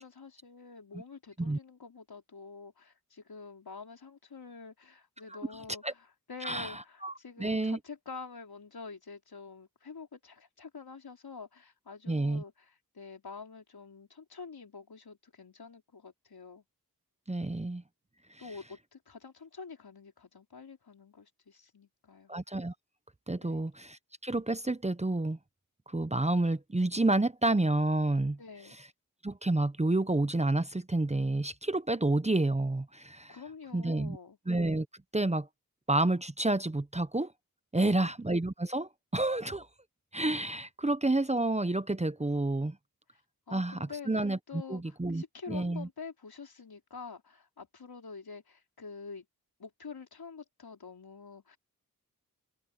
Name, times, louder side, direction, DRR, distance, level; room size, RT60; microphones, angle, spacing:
voice 1, 0.0-16.6 18.4-22.3 23.4-23.7 28.4-28.8 33.3-34.4 37.7-38.1 43.5-49.3 49.6-51.6, left 4 dB, 70° left, 4.3 m, -47 dB
voice 2, 7.4-7.8 12.1-12.4 17.3-17.8 22.3-22.7 23.3-25.4 25.9-28.4 29.2-33.4 33.7-34.2 34.5-34.9 35.1-35.5 35.9-37.3 37.7-39.7 40.1-42.8 43.5-45.9, right 2 dB, 20° right, 0.9 m, -29 dB
cardioid pair, 45°, 38 cm